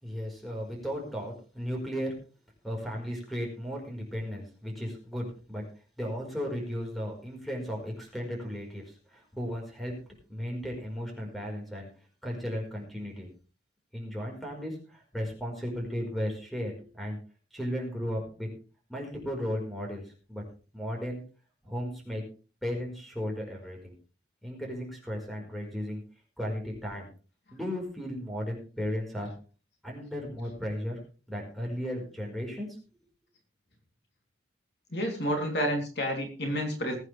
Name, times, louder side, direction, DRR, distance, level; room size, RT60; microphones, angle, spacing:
voice 1, 0.0-2.1 2.6-5.6 6.0-9.9 10.3-11.9 12.2-13.3 13.9-17.2 17.5-18.5 18.9-20.0 20.3-20.4 20.7-21.2 21.6-22.2 22.6-23.9 24.4-26.0 26.4-27.1 27.5-29.3 29.8-31.0 31.3-32.8, equal, ahead, 0 dB, 4.9 m, -35 dB
voice 2, 34.9-37.0, equal, 60° left, 1 dB, 3.3 m, -30 dB
20.5 x 9.3 x 3.4 m, 0.36 s
head